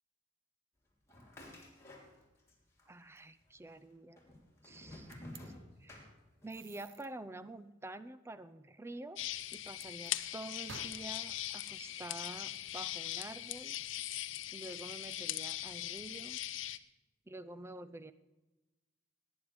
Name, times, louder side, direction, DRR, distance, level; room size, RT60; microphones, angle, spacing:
sound 1, 1.1-2.5 2.8-3.5 4.2-6.6, left 1 dB, 15° left, 3.4 m, -52 dB
voice 1, 2.9-4.2 4.6-5.1 5.8-6.1 6.4-9.2 9.5-13.8 14.5-16.4 17.3-18.1, right 2 dB, 15° right, 13 dB, 0.5 m, -48 dB
sound 2, 5.1-5.4 6.5-7.1 9.7-10.2 10.7-12.9, right 5 dB, 85° right, 0.9 m, -55 dB
sound 3, 9.2-16.8, left 13 dB, 75° left, 0.6 m, -40 dB
18.0 x 9.9 x 5.1 m, 1.1 s
head